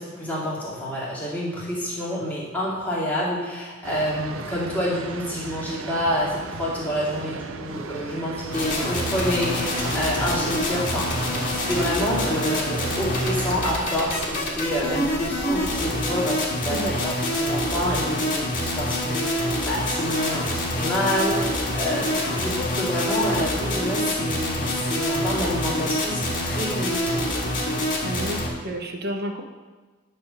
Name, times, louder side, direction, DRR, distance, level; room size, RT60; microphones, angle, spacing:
voice 1, 0.2-27.2, equal, 10° left, -8 dB, 2.8 m, -28 dB
sound 1, 3.8-14.4, right 4 dB, 75° right, 0.6 m, -36 dB
sound 2, 8.5-28.5, left 1 dB, 45° left, 2.0 m, -26 dB
voice 2, 28.0-29.4, equal, 50° right, 3 dB, 1.1 m, -31 dB
10.0 x 4.6 x 6.4 m, 1.3 s
head